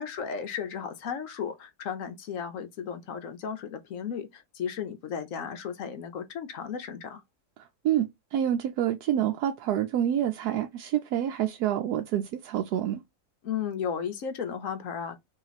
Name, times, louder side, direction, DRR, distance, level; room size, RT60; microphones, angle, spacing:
voice 1, 0.0-7.2 13.4-15.2, left 7 dB, 65° left, 1.0 m, -34 dB
voice 2, 7.8-13.0, right 11 dB, 80° right, 1.1 m, -27 dB
3.1 x 2.9 x 4.0 m
omnidirectional pair, 1.7 m